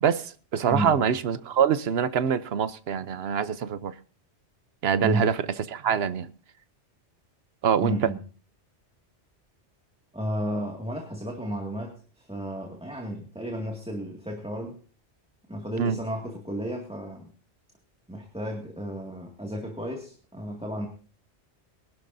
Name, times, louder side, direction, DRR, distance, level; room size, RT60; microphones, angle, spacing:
voice 1, 0.0-3.9 4.8-6.3 7.6-8.1 15.8-16.0, right 7 dB, 65° right, 1.0 m, -25 dB
voice 2, 0.7-1.1 5.0-5.3 7.8-8.2 10.1-14.8 15.5-17.3 18.1-20.9, equal, 5° right, 2.1 m, -33 dB
23.5 x 11.5 x 2.7 m
omnidirectional pair, 1.2 m